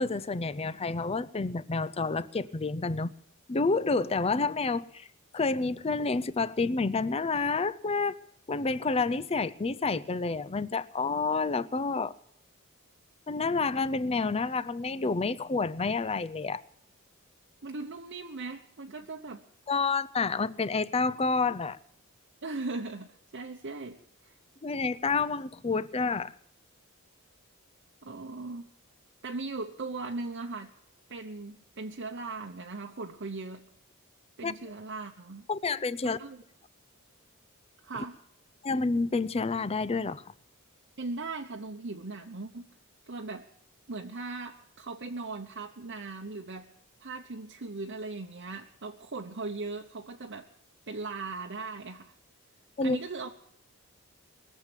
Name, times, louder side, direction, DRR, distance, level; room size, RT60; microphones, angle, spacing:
voice 1, 0.0-3.1 3.5-5.1 5.3-8.2 8.5-12.1 13.3-16.6 19.7-21.8 24.6-26.3 34.4-34.5 35.5-36.2 38.6-40.2 52.8-53.0, left 4 dB, 25° left, 0.5 m, -29 dB
voice 2, 17.6-19.4 22.4-24.3 28.0-28.7 29.2-30.7 31.1-33.7 34.4-35.4 36.0-36.4 37.8-38.2 41.0-42.7 43.1-43.5 43.9-46.7 47.0-50.5 50.9-52.1 52.8-53.3, right 3 dB, 55° right, 0.9 m, -38 dB
21.5 x 7.4 x 9.0 m
head